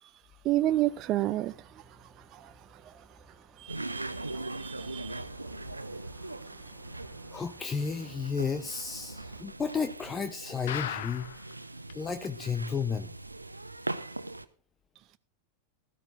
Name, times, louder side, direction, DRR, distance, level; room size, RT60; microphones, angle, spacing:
voice 1, 0.4-2.5 2.8-3.0 3.6-5.2, right 14 dB, 35° right, 0.4 m, -32 dB
sound 1, 0.6-9.4, right 4 dB, 20° right, 2.1 m, -57 dB
sound 2, 3.7-14.4, right 2 dB, 85° right, 0.8 m, -41 dB
voice 2, 7.3-11.3 11.9-13.1, left 5 dB, 15° left, 0.8 m, -32 dB
sound 3, 10.7-11.5 11.9-12.0 12.2-12.3 12.8-12.9, left 9 dB, 60° left, 1.1 m, -36 dB
17.5 x 13.5 x 2.6 m
figure-of-eight pair, 90°, 0 cm